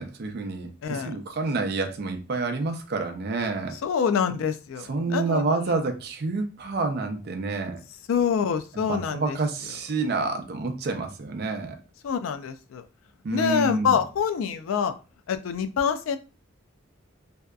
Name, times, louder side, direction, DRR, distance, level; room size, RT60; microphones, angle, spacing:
voice 1, 0.0-3.8 4.9-7.8 8.9-11.8 13.2-14.0, right 3 dB, 50° right, 0.4 m, -28 dB
voice 2, 0.8-1.1 3.8-5.5 8.1-9.4 12.0-12.8 13.3-14.9 15.3-16.2, left 7 dB, 90° left, 0.3 m, -26 dB
2.7 x 2.2 x 2.3 m
head